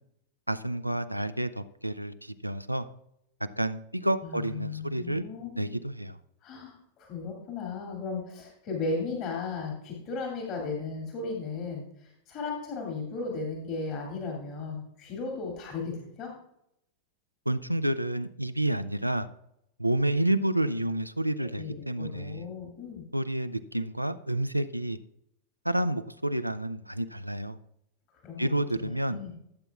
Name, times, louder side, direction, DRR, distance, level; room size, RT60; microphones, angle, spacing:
voice 1, 0.5-2.8 3.6-5.3 5.6-6.2 17.5-19.3 19.8-22.5 23.1-25.0 25.7-27.6 28.4-29.2, right 1 dB, 90° right, 11 dB, 0.4 m, -29 dB
voice 2, 4.2-5.8 6.4-16.3 21.4-23.0 28.1-29.3, left 4 dB, 40° left, 0 dB, 2.4 m, -36 dB
15.5 x 7.9 x 2.4 m, 0.78 s
figure-of-eight pair, 90°, 0 cm